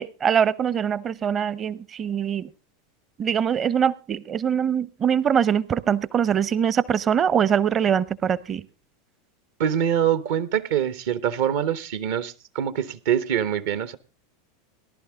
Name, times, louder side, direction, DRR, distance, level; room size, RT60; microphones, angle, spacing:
voice 1, 0.0-2.5 3.2-8.6, right 8 dB, 30° right, 20 dB, 0.8 m, -23 dB
voice 2, 9.6-14.0, right 9 dB, 60° right, 15 dB, 1.0 m, -24 dB
18.5 x 11.5 x 3.5 m, 0.30 s
figure-of-eight pair, 85°, 0 cm